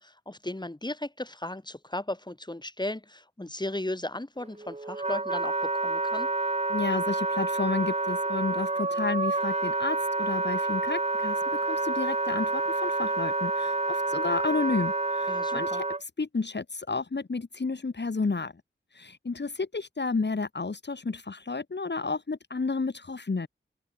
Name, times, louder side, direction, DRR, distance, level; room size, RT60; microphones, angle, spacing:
voice 1, 0.0-6.3 15.3-15.8, left 1 dB, 20° left, 5.9 m, -36 dB
Wind instrument woodwind instrument, 4.4-16.0, right 2 dB, 30° right, 1.5 m, -28 dB
voice 2, 6.7-18.5 18.9-23.5, left 4 dB, 55° left, 2.7 m, -31 dB
open air
wide cardioid pair, 65°, 21 cm